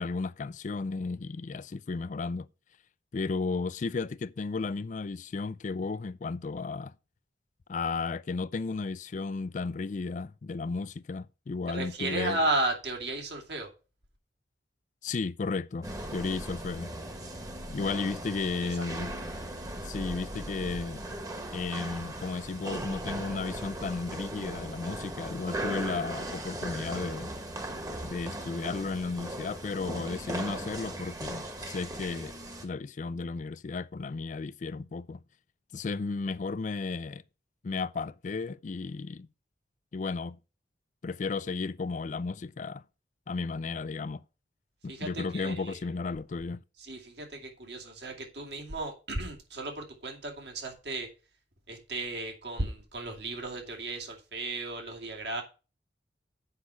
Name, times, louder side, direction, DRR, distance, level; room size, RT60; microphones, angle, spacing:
voice 1, 0.0-2.5 3.1-6.9 7.7-12.4 15.0-16.9 17.7-19.1 19.8-21.0 21.5-27.3 28.0-32.3 32.6-35.2 35.7-37.2 37.6-39.3 39.9-40.4 41.0-42.8 43.3-44.2 44.8-46.6, left 4 dB, 45° left, 0.4 m, -34 dB
voice 2, 11.7-13.7 18.5-18.9 44.9-45.8 46.8-51.1 51.7-55.4, right 2 dB, 65° right, 2.5 m, -34 dB
sound 1, 15.8-32.7, right 1 dB, 20° right, 1.2 m, -38 dB
8.1 x 5.8 x 5.6 m
head